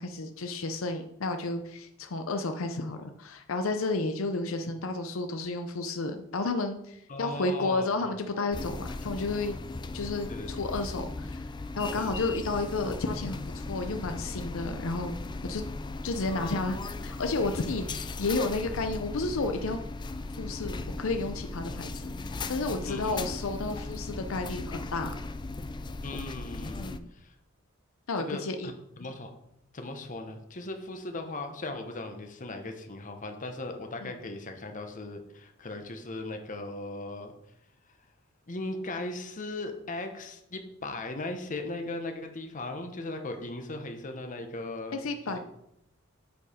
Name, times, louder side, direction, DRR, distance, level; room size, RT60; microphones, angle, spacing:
voice 1, 0.0-9.6 9.9-11.5 11.8-15.2 15.4-15.6 16.0-19.8 20.4-25.1 26.8-27.1 28.1-28.7 29.0-29.1 34.0-34.1 44.9-45.4, left 3 dB, 75° left, 7 dB, 0.6 m, -32 dB
voice 2, 7.1-7.9 10.3-10.5 11.9-12.1 21.7-21.8 22.9-23.3 26.0-26.9 27.1-27.3 28.1-29.3 29.7-37.3 38.5-45.0 45.3-45.4, left 2 dB, 40° left, 5 dB, 1.0 m, -38 dB
sound 1, 8.5-27.0, left 3 dB, 20° left, 0.3 m, -37 dB
8.0 x 4.7 x 5.0 m, 0.80 s
head